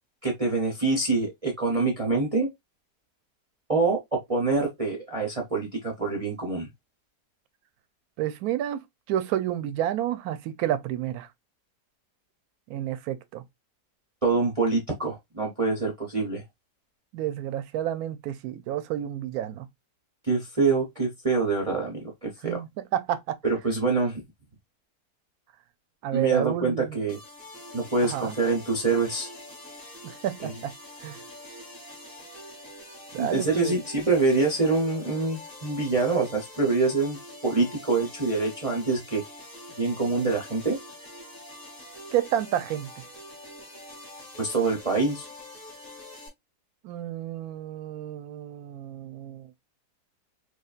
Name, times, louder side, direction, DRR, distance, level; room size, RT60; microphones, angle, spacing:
voice 1, 0.2-2.5 3.7-6.7 14.2-16.4 20.2-22.6 23.4-24.2 26.1-27.2 27.7-29.3 30.4-30.5 33.2-39.2 39.8-40.8 44.4-45.3, right 3 dB, 35° right, 0.6 m, -25 dB
voice 2, 8.2-8.8 9.1-11.3 12.7-13.4 17.1-19.7 22.4-23.4 26.0-27.0 28.0-28.3 30.0-30.7 31.0-31.2 33.1-33.8 42.1-42.9 46.8-49.5, right 11 dB, 75° right, 1.0 m, -30 dB
sound 1, 27.1-46.3, left 1 dB, 35° left, 1.5 m, -45 dB
4.9 x 2.3 x 2.4 m
omnidirectional pair, 1.7 m